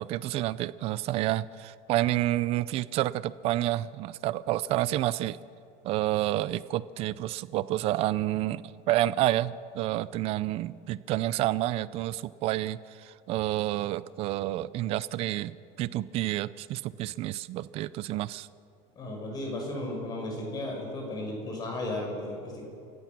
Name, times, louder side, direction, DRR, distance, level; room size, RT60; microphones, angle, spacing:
voice 1, 0.0-5.4 5.8-18.5, right 15 dB, 40° right, 17 dB, 0.5 m, -29 dB
voice 2, 19.0-22.6, left 1 dB, 25° left, 1 dB, 5.4 m, -34 dB
29.0 x 15.0 x 6.1 m, 2.5 s
cardioid pair, 170°, 16 cm